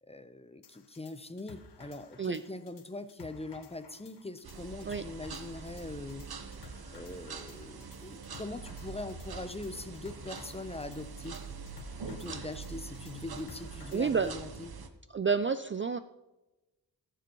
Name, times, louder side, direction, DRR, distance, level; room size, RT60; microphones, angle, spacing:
voice 1, 0.0-11.4 12.1-14.7, left 2 dB, 15° left, 11 dB, 0.6 m, -42 dB
sound 1, 0.6-14.3, left 5 dB, 80° left, 1.2 m, -56 dB
sound 2, 4.4-14.9, right 5 dB, 60° right, 1.0 m, -44 dB
voice 2, 13.9-14.3 15.1-16.0, right 5 dB, 30° right, 12 dB, 0.4 m, -29 dB
19.0 x 6.9 x 3.0 m, 1.0 s
cardioid pair, 65°, 42 cm